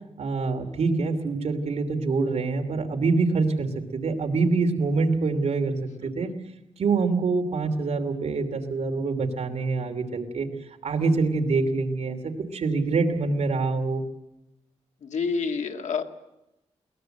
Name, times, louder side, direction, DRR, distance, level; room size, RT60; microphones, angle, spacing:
voice 1, 0.2-6.3 6.8-10.5 10.8-14.0, right 4 dB, 65° right, 4 dB, 2.8 m, -25 dB
voice 2, 15.0-16.0, left 5 dB, 80° left, 5 dB, 1.9 m, -28 dB
22.5 x 18.5 x 7.8 m, 0.90 s
wide cardioid pair, 125°, 12 cm